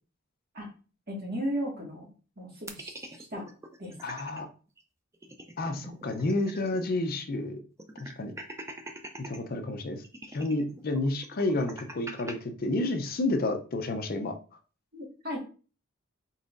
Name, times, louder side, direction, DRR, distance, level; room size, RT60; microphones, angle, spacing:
voice 1, 1.1-2.1 2.4-3.5 3.8-3.9 5.9-6.0 14.9-15.4, equal, 50° right, -2 dB, 1.7 m, -35 dB
sound 1, 2.7-4.4 4.8-4.9 5.1-6.9 7.2-7.3 7.8-9.4 10.0-12.3, right 1 dB, 15° right, 0.4 m, -43 dB
voice 2, 4.0-4.5 5.6-7.6 8.0-8.3 9.3-10.0 10.3-14.3, left 2 dB, 45° left, 6 dB, 0.5 m, -30 dB
4.0 x 3.8 x 2.5 m, 0.36 s
head